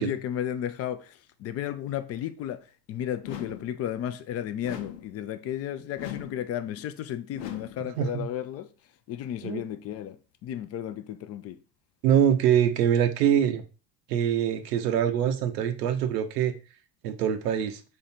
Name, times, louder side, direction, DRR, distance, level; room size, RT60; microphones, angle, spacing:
voice 1, 0.0-8.7 9.1-11.6, left 10 dB, 30° left, 0.4 m, -34 dB
sound 1, 3.2-3.8 4.6-5.2 6.0-6.5 7.3-7.9, left 10 dB, 75° left, 0.8 m, -39 dB
voice 2, 8.0-8.3 9.4-9.6 12.0-13.6 14.1-16.5 17.0-17.8, right 9 dB, 75° right, 0.7 m, -24 dB
3.9 x 3.2 x 4.2 m
hypercardioid pair, 75°, 49 cm